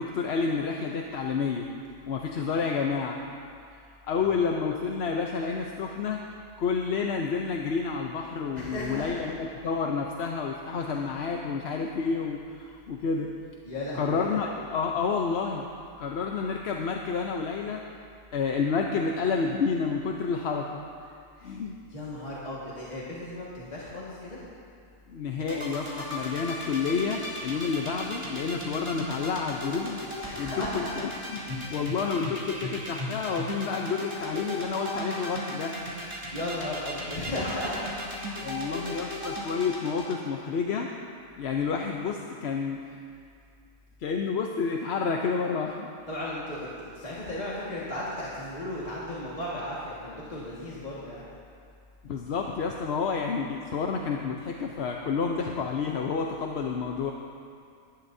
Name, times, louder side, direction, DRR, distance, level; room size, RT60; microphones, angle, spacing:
voice 1, 0.0-1.7 2.1-3.2 3.7-6.2 6.6-13.3 14.0-15.6 16.0-17.8 18.3-20.8 21.4-21.8 25.1-30.0 30.4-30.8 31.3-35.8 38.4-40.9 41.4-43.0 44.0-45.9 52.0-57.1, left 5 dB, 60° left, 1 dB, 0.9 m, -29 dB
voice 2, 8.5-9.3 10.9-11.0 13.6-14.4 21.9-24.4 30.2-30.9 36.3-38.0 38.9-39.1 46.1-51.3, left 1 dB, 30° left, -7 dB, 1.9 m, -35 dB
sound 1, 25.4-40.2, equal, 20° right, 2.5 m, -36 dB
22.0 x 11.5 x 2.7 m, 2.3 s
omnidirectional pair, 1.4 m